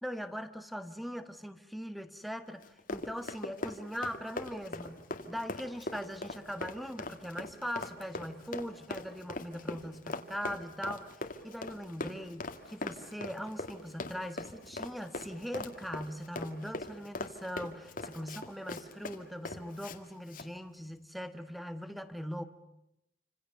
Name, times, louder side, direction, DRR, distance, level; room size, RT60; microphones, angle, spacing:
voice 1, 0.0-22.4, equal, ahead, 10 dB, 1.5 m, -41 dB
Run, 2.6-20.0 20.3-20.5, left 2 dB, 50° left, 1.9 m, -41 dB
28.0 x 26.5 x 6.8 m, 0.83 s
head